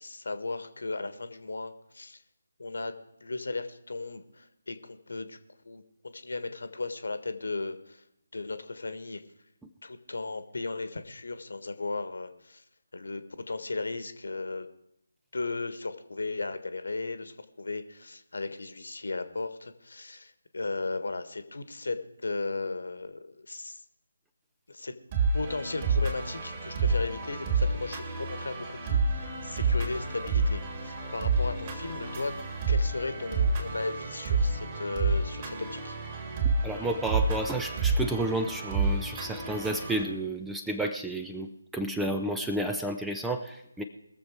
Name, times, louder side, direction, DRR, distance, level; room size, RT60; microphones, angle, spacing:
voice 1, 0.0-2.2 2.6-2.9 3.2-5.4 5.6-8.0 8.3-9.2 9.8-12.6 12.9-14.7 15.3-23.8 24.7-24.9 25.3-32.4 32.7-36.0, left 3 dB, 60° left, 10 dB, 1.4 m, -36 dB
sound 1, 25.1-40.0, right 3 dB, 25° right, 2.9 m, -29 dB
voice 2, 36.4-43.8, right 1 dB, 5° right, 6 dB, 0.6 m, -31 dB
21.5 x 7.3 x 4.7 m, 0.83 s
figure-of-eight pair, 150°, 0 cm